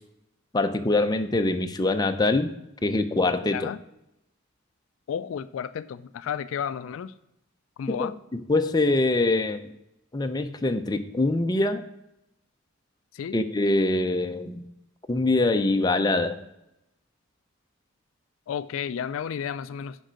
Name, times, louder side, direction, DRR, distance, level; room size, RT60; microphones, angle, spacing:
voice 1, 0.5-2.5 2.8-3.7 8.0-9.6 10.1-11.8 13.3-14.6 15.1-16.4, left 2 dB, 20° left, 7 dB, 0.5 m, -24 dB
voice 2, 3.4-3.8 5.1-7.1 7.8-8.1 13.1-13.4 18.5-20.0, left 8 dB, 75° left, 14 dB, 0.3 m, -32 dB
6.4 x 5.4 x 6.2 m, 0.88 s
head